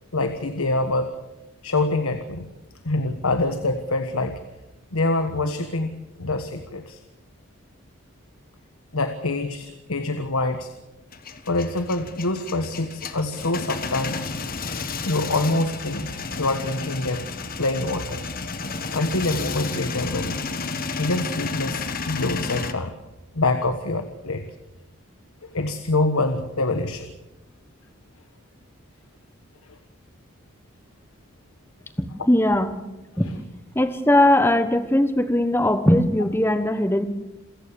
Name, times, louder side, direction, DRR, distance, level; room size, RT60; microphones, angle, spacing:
voice 1, 0.1-1.1 1.6-2.5 2.8-4.4 4.9-5.9 6.2-7.0 8.9-10.7 11.4-14.3 15.0-17.2 17.6-18.3 18.9-20.4 21.0-22.9 23.3-24.4 25.4-27.1 29.7-29.8 33.2-33.4, left 2 dB, 85° left, 8 dB, 1.4 m, -25 dB
Male speech man speaking / Vehicle / Engine starting, 11.1-22.7, left 4 dB, 40° left, 1.4 m, -32 dB
voice 2, 32.0-32.8 33.2-33.3 33.7-37.1, left 1 dB, 10° left, 10 dB, 1.3 m, -20 dB
27.5 x 15.5 x 7.1 m, 0.99 s
head